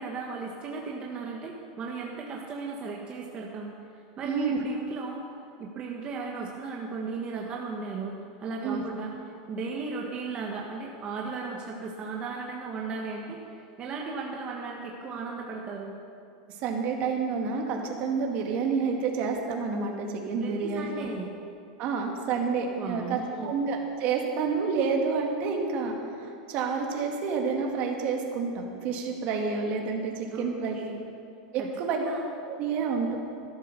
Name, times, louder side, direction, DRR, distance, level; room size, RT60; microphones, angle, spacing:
voice 1, 0.0-3.7 4.2-5.2 5.6-15.9 20.4-21.3 22.8-23.5 30.3-31.0 31.6-32.2, right 4 dB, 30° right, -1 dB, 1.4 m, -36 dB
voice 2, 4.2-4.6 8.6-8.8 16.6-21.1 21.8-25.9 26.2-30.7 31.5-32.0 32.5-33.2, right 5 dB, 45° right, 1 dB, 2.3 m, -29 dB
12.5 x 12.0 x 6.8 m, 2.5 s
supercardioid pair, 145°, 4 cm